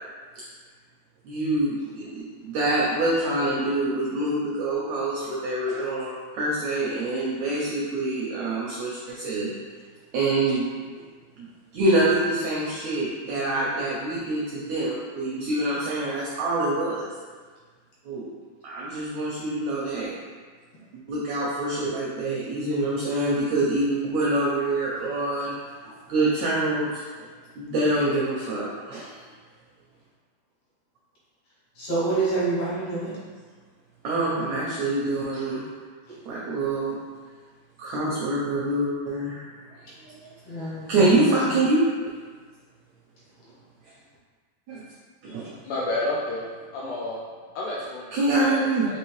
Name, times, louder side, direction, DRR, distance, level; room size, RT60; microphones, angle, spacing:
voice 1, 1.2-9.6 10.1-10.8 11.4-11.5 11.7-17.1 18.0-18.3 18.6-20.1 21.1-25.6 25.8-26.9 27.6-29.1 34.0-35.6 36.3-36.9 37.8-39.5 40.0-40.2 40.5-41.8 44.7-44.8 45.2-45.5 48.1-48.9, right 2 dB, 80° right, -6 dB, 1.6 m, -25 dB
voice 2, 31.8-33.2 40.5-41.1, right 3 dB, 65° left, -8 dB, 2.4 m, -27 dB
voice 3, 45.5-47.2 47.6-48.1 48.4-49.0, left 1 dB, 80° left, -5 dB, 1.8 m, -30 dB
5.3 x 3.0 x 3.1 m, 1.5 s
omnidirectional pair, 4.0 m